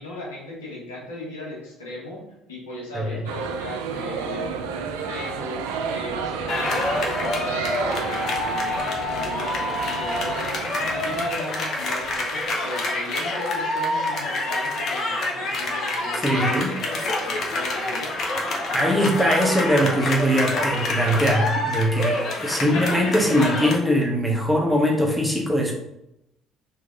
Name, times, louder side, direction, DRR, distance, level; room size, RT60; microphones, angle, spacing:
voice 1, 0.0-2.2 2.5-18.2, left 1 dB, 85° left, -5 dB, 1.2 m, -37 dB
sound 1, 3.3-11.3, right 6 dB, 75° right, 0.3 m, -31 dB
sound 2, 6.5-23.8, left 2 dB, 55° left, 0.8 m, -27 dB
voice 2, 16.2-16.7 18.7-25.7, equal, ahead, -1 dB, 1.0 m, -21 dB
3.2 x 2.7 x 3.8 m, 0.85 s
hypercardioid pair, 50°, 0 cm